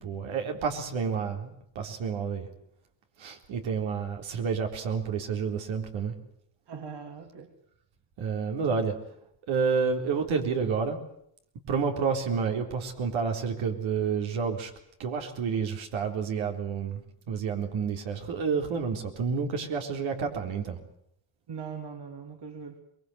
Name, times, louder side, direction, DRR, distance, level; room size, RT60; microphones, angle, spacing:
voice 1, 0.0-2.5 3.2-6.1 8.2-9.0 9.5-11.0 11.7-14.7 15.0-17.0 17.3-20.8, right 5 dB, 75° right, 3 dB, 3.9 m, -29 dB
voice 2, 6.7-7.5 21.5-22.8, right 6 dB, 55° right, 5 dB, 3.1 m, -40 dB
23.5 x 21.0 x 8.0 m, 0.71 s
supercardioid pair, 75°, 47 cm